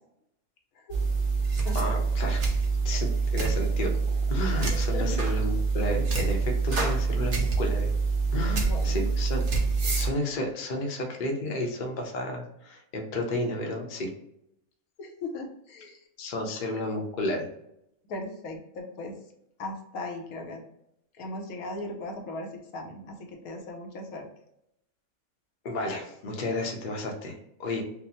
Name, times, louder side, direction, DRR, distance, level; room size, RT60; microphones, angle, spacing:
sound 1, 0.9-10.1, right 4 dB, 45° right, 0.8 m, -26 dB
voice 1, 1.7-4.0 4.3-7.9 8.3-9.4 9.9-14.1 16.2-17.5 25.6-27.8, left 1 dB, 45° left, 1 dB, 0.7 m, -32 dB
voice 2, 4.5-5.2 8.5-9.1 15.0-16.0 18.1-19.2 19.6-20.6 21.2-24.3, left 2 dB, 80° left, 2 dB, 1.2 m, -38 dB
5.2 x 2.0 x 2.8 m, 0.79 s
omnidirectional pair, 1.5 m